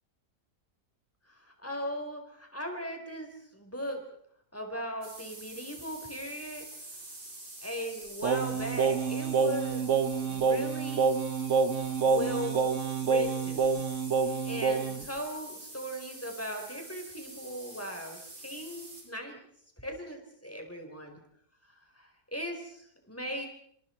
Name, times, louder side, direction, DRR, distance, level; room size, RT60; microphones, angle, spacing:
voice 1, 1.4-4.0 4.5-6.7 7.6-9.9 10.2-11.2 12.0-13.8 14.2-19.4 19.8-21.2 22.0-23.5, equal, 10° left, 3 dB, 4.4 m, -38 dB
sound 1, 5.0-19.0, right 2 dB, 85° right, 6.2 m, -46 dB
Singing, 8.2-15.0, right 5 dB, 50° right, 1.5 m, -27 dB
27.5 x 25.0 x 4.5 m, 0.65 s
omnidirectional pair, 1.7 m